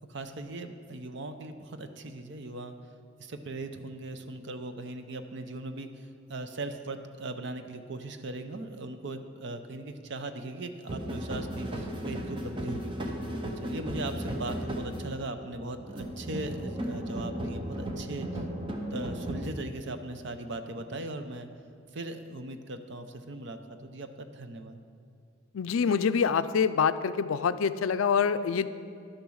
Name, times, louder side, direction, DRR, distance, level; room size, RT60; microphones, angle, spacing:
voice 1, 0.1-2.7 3.2-12.9 13.6-18.5 18.9-21.5 21.9-24.8, right 2 dB, 60° right, 8 dB, 0.7 m, -39 dB
sound 1, 10.9-19.5, right 1 dB, 25° right, 0.9 m, -35 dB
voice 2, 25.5-28.7, left 6 dB, 80° left, 13 dB, 0.4 m, -26 dB
11.0 x 6.9 x 6.4 m, 2.5 s
head